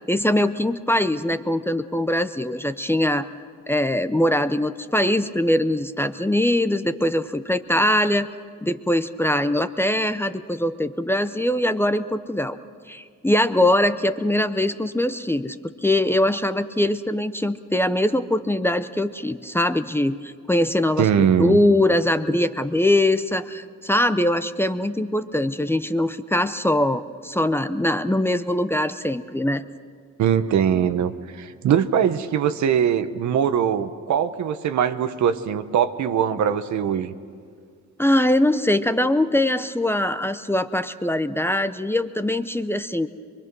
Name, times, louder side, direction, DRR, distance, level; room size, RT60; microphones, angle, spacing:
voice 1, 0.1-3.3 3.7-8.3 8.6-12.6 12.9-15.6 15.8-29.6 38.0-43.1, left 1 dB, 10° left, 11 dB, 0.6 m, -22 dB
voice 2, 21.0-21.6 30.2-37.1, right 8 dB, 70° right, 11 dB, 1.0 m, -21 dB
23.5 x 23.5 x 6.2 m, 2.1 s
cardioid pair, 90°, 30 cm